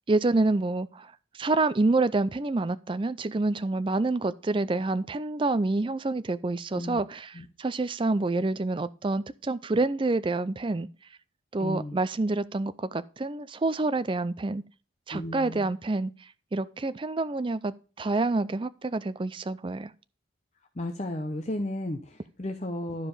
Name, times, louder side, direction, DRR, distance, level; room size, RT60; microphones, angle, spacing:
voice 1, 0.1-10.9 11.5-14.6 15.1-16.1 16.5-19.9, right 2 dB, 25° right, 0.4 m, -27 dB
voice 2, 11.6-12.0 15.1-15.7 20.8-23.1, left 1 dB, 35° left, 0.8 m, -34 dB
12.0 x 5.0 x 5.4 m
head